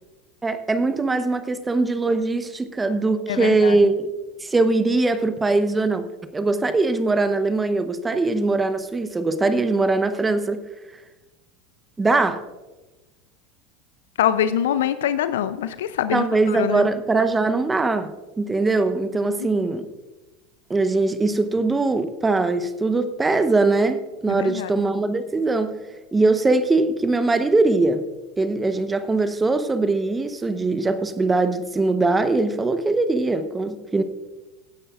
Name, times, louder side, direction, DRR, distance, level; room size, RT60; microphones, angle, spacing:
voice 1, 0.4-4.1 4.4-6.1 6.3-10.6 12.0-12.4 16.1-19.9 20.7-25.8 26.1-28.0 28.4-34.0, right 3 dB, 15° right, 10 dB, 0.9 m, -21 dB
voice 2, 3.3-3.8 14.2-16.9 19.4-19.5 24.3-24.7, left 10 dB, 75° left, 13 dB, 0.4 m, -24 dB
17.0 x 10.0 x 2.4 m, 1.1 s
hypercardioid pair, 80°, 0 cm